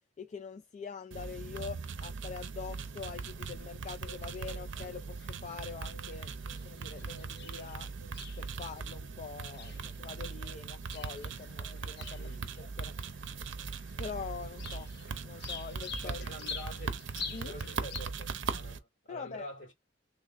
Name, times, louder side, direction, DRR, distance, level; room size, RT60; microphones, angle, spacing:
voice 1, 0.2-7.9 8.4-12.3 12.6-12.9 14.0-14.9 15.2-16.2 17.3-17.6 19.1-19.5, left 6 dB, 40° left, 0.3 m, -44 dB
sound 1, 1.1-18.8, right 5 dB, 70° right, 0.6 m, -40 dB
sound 2, 4.0-18.0, left 5 dB, 60° left, 0.8 m, -48 dB
voice 2, 12.2-12.6 16.0-17.0 17.4-19.7, equal, 80° left, 2.1 m, -47 dB
3.3 x 2.1 x 3.8 m
head